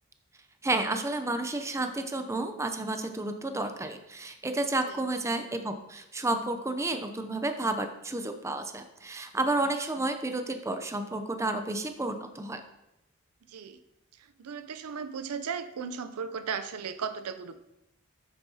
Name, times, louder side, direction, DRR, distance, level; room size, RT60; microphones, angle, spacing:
voice 1, 0.6-12.6, right 2 dB, 15° right, 7 dB, 0.5 m, -31 dB
voice 2, 13.5-13.8 14.2-17.5, right 6 dB, 85° right, 11 dB, 0.5 m, -36 dB
7.2 x 7.1 x 2.8 m, 0.88 s
head